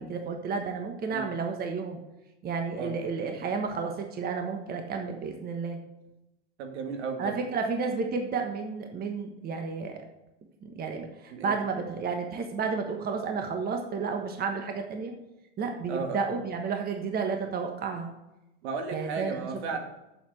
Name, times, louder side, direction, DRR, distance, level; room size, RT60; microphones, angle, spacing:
voice 1, 0.0-2.0 2.4-5.8 7.2-10.0 10.6-15.1 15.6-18.1 18.9-19.3, right 5 dB, 25° right, 4 dB, 1.3 m, -31 dB
voice 2, 6.6-7.4 11.3-11.6 15.9-16.2 18.6-19.8, right 4 dB, 75° right, 4 dB, 2.3 m, -34 dB
7.3 x 7.1 x 7.7 m, 0.93 s
supercardioid pair, 125°, 34 cm